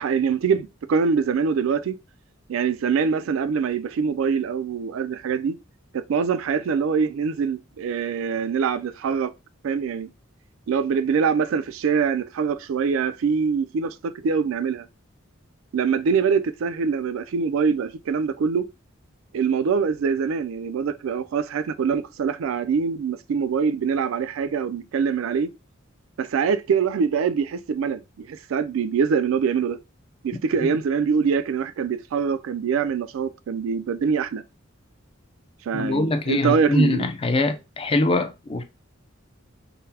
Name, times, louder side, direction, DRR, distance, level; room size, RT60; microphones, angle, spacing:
voice 1, 0.0-2.0 2.5-5.6 5.9-9.3 9.6-10.1 10.7-14.9 15.7-18.7 19.3-25.5 26.2-29.8 30.2-34.4 35.7-37.1, right 6 dB, 75° right, 0.3 m, -24 dB
voice 2, 35.7-38.6, left 2 dB, 25° left, 0.4 m, -23 dB
3.8 x 2.1 x 2.7 m
head